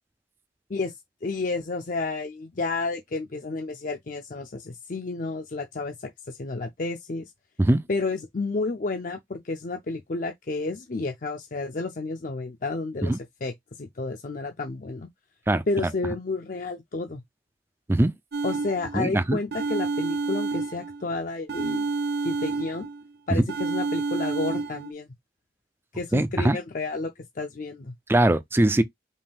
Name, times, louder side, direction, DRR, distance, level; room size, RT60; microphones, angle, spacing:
voice 1, 1.2-7.3 7.9-15.1 15.7-17.2 18.4-21.9 22.2-22.9 23.3-25.1 25.9-27.1 27.4-27.9, left 3 dB, 45° left, 0.6 m, -31 dB
sound 1, 18.3-19.1 19.5-21.1 21.5-23.1 23.5-24.9, right 3 dB, 60° right, 0.6 m, -29 dB
voice 2, 18.9-19.4 23.3-23.5 26.1-26.6 28.1-28.8, right 1 dB, 15° right, 0.4 m, -21 dB
5.4 x 2.6 x 3.4 m
head